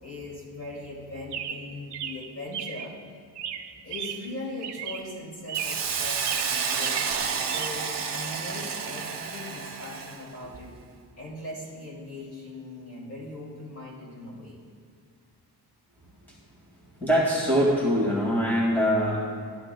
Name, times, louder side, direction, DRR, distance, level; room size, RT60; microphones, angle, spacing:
voice 1, 0.0-3.0 3.8-7.0 7.4-10.8 11.2-14.6, left 2 dB, 35° left, -5 dB, 2.6 m, -40 dB
Chirp tweet, 1.3-2.9 3.4-4.4 4.6-5.1 5.5-5.9 6.2-7.7, right 9 dB, 75° right, 0.7 m, -35 dB
Hiss, 5.5-10.3, right 6 dB, 55° right, 1.0 m, -30 dB
voice 2, 17.0-19.3, equal, 5° left, -6 dB, 2.1 m, -23 dB
13.5 x 11.5 x 2.2 m, 2.3 s
wide cardioid pair, 130°, 41 cm